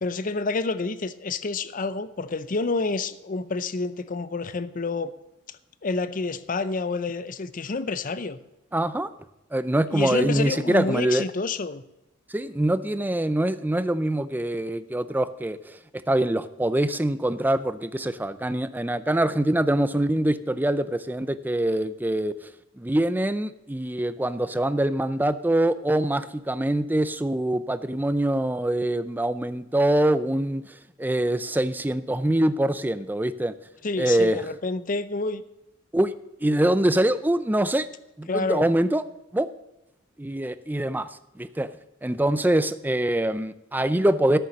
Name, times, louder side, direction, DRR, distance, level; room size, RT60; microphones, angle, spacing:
voice 1, 0.0-5.1 5.5-8.4 9.9-11.8 33.8-35.4 38.3-38.7, left 3 dB, 40° left, 14 dB, 0.6 m, -28 dB
voice 2, 8.7-9.1 9.5-11.2 12.3-15.7 16.1-22.3 22.8-30.6 31.0-33.5 34.0-34.4 35.9-36.1 36.4-37.9 38.2-39.0 39.3-39.5 40.2-41.1 41.4-41.7 42.0-44.4, right 1 dB, 10° right, 13 dB, 0.5 m, -24 dB
13.0 x 6.9 x 6.4 m, 0.92 s
head